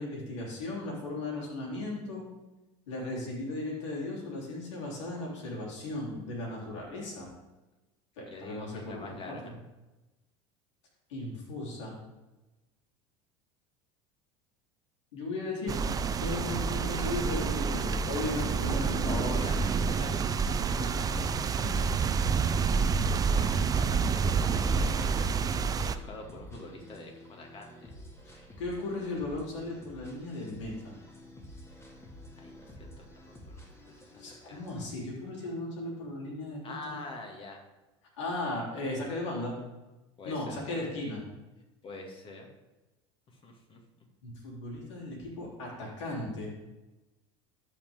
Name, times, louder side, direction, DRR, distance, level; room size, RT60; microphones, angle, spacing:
voice 1, 0.0-2.3 2.9-7.3 8.2-9.5 11.1-12.0 15.1-15.8 16.2-19.5 21.6-21.7 28.3-31.0 34.2-37.0 38.2-39.6 40.3-41.2 44.2-46.5, left 2 dB, 90° left, -4 dB, 3.5 m, -36 dB
voice 2, 8.3-9.6 19.0-21.1 21.4-21.5 23.1-27.9 32.4-34.6 36.6-37.6 40.2-40.6 41.8-42.5 43.3-43.8, left 2 dB, 35° left, 2 dB, 2.2 m, -45 dB
sound 1, 15.7-26.0, right 5 dB, 25° right, 0.5 m, -28 dB
sound 2, 20.8-34.9, left 1 dB, 15° left, 2.1 m, -50 dB
13.5 x 5.7 x 3.6 m, 1.1 s
supercardioid pair, 105°, 15 cm